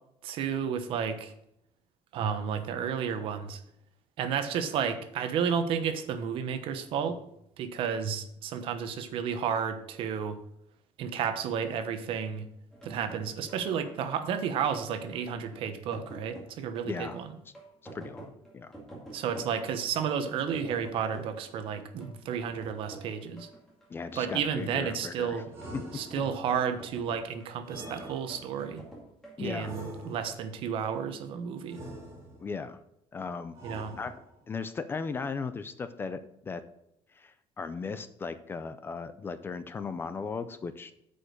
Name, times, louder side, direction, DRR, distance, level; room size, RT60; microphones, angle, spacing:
voice 1, 0.2-1.3 2.1-3.6 4.2-7.2 7.6-10.4 11.0-12.4 12.8-17.3 19.1-23.5 24.2-25.5 25.9-28.8 29.4-31.8 33.6-33.9, right 7 dB, 60° right, 9 dB, 1.0 m, -32 dB
sound 1, 12.7-29.4, right 2 dB, 5° left, 2.1 m, -49 dB
voice 2, 16.8-17.2 17.9-18.7 23.9-25.4 25.7-26.0 29.4-29.7 32.4-32.8 33.1-33.6 34.0-34.1 34.5-36.6 37.1-40.9, left 5 dB, 20° left, 12 dB, 0.5 m, -37 dB
sound 2, 25.5-26.6 27.6-28.7 29.6-30.6 31.7-32.6 33.5-34.5, right 1 dB, 25° right, 3.1 m, -45 dB
8.3 x 5.2 x 6.5 m, 0.77 s
cardioid pair, 165°, 10 cm